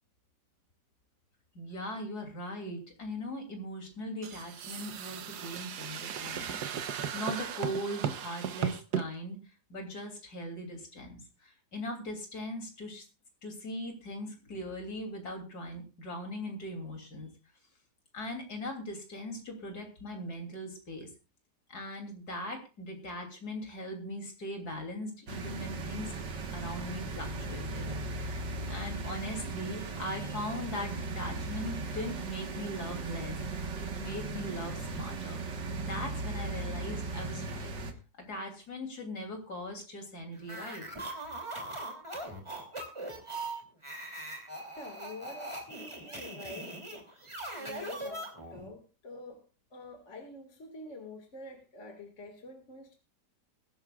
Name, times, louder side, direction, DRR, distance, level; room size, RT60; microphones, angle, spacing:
voice 1, 1.5-9.4 9.7-13.0 13.4-17.3 18.1-21.1 21.7-26.1 26.5-27.9 28.2-33.4 33.8-35.4 35.8-37.7 38.3-40.8, left 1 dB, 60° left, 2 dB, 3.5 m, -40 dB
sound 1, 4.2-9.1, right 8 dB, 70° right, 1.4 m, -36 dB
sound 2, 25.3-37.9, right 3 dB, 85° right, 2.2 m, -37 dB
sound 3, 40.4-48.7, right 2 dB, 15° right, 2.9 m, -41 dB
voice 2, 44.8-47.0 47.6-49.4 49.7-52.9, left 2 dB, 45° left, 3 dB, 2.3 m, -47 dB
21.5 x 12.0 x 2.4 m, 0.31 s
omnidirectional pair, 1.9 m